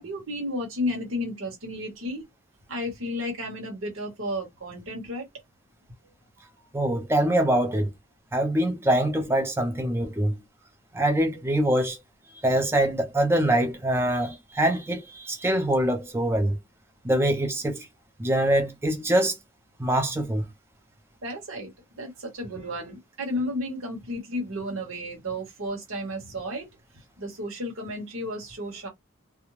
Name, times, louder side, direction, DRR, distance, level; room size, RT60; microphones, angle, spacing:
voice 1, 0.0-2.2 2.7-5.3 6.4-6.5 21.2-21.7 22.0-26.7 27.2-28.9, left 1 dB, 70° right, 1.0 m, -32 dB
voice 2, 6.7-7.9 8.3-10.4 10.9-12.0 12.4-16.6 17.0-17.9 18.2-19.3 19.8-20.4, right 1 dB, 10° right, 0.5 m, -24 dB
2.4 x 2.1 x 3.0 m
head